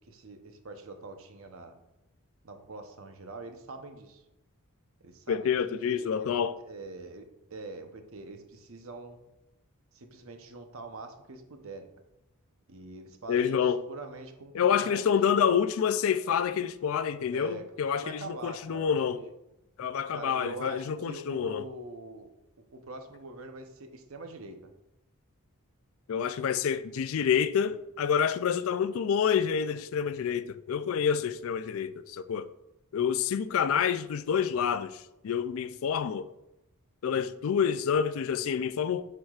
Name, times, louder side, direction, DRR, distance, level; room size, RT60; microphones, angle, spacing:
voice 1, 0.1-1.8 2.4-4.2 5.0-6.3 6.7-9.2 9.9-11.9 12.7-13.6 13.9-15.0 15.3-15.5 17.3-17.7 17.9-19.3 20.1-22.3 22.7-24.7, right 3 dB, 65° right, 0.8 m, -44 dB
voice 2, 5.3-6.6 13.3-13.8 14.5-19.2 19.8-21.7 26.1-32.5 32.9-36.3 37.0-39.0, left 7 dB, 65° left, 0.3 m, -28 dB
7.6 x 5.8 x 2.4 m
head